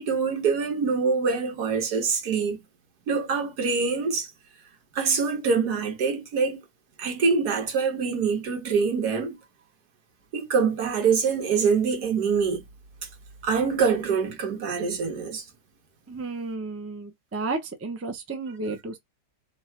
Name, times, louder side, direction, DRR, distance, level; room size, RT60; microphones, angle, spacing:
voice 1, 0.0-2.6 3.1-4.3 4.9-6.6 7.0-9.4 10.3-12.6 13.4-15.4, right 5 dB, 70° right, 1.6 m, -25 dB
voice 2, 16.1-19.0, right 3 dB, 20° right, 0.3 m, -32 dB
3.8 x 2.4 x 4.3 m
omnidirectional pair, 1.8 m